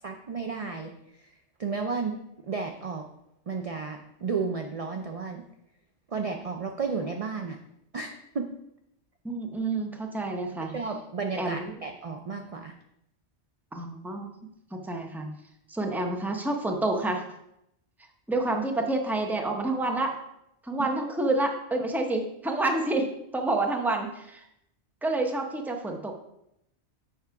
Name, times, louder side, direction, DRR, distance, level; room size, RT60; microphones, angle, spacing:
voice 1, 0.0-0.9 1.2-1.3 1.6-2.1 2.4-3.1 3.5-5.4 6.1-7.6 7.9-8.5 10.6-12.7 20.8-20.9, right 5 dB, 45° right, 4 dB, 0.4 m, -33 dB
voice 2, 9.2-10.7 11.4-11.7 13.7-14.3 14.7-15.3 15.7-17.2 18.3-20.2 20.6-24.4 25.0-26.1, right 2 dB, ahead, 3 dB, 0.6 m, -28 dB
7.0 x 5.1 x 4.7 m, 0.80 s
omnidirectional pair, 1.2 m